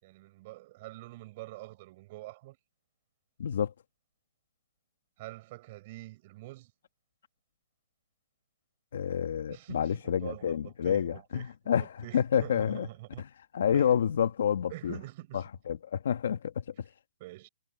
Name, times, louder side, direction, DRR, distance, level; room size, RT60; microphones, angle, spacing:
voice 1, 0.0-2.6 5.2-6.7 9.5-11.5 11.8-13.2 13.7-13.9 14.7-15.4 17.2-17.5, right 19 dB, 25° right, 6.5 m, -45 dB
voice 2, 3.4-3.7 8.9-12.9 13.2-13.3 13.5-15.0 15.3-16.6, left 8 dB, 45° left, 1.8 m, -29 dB
hypercardioid pair, 175°, 0 cm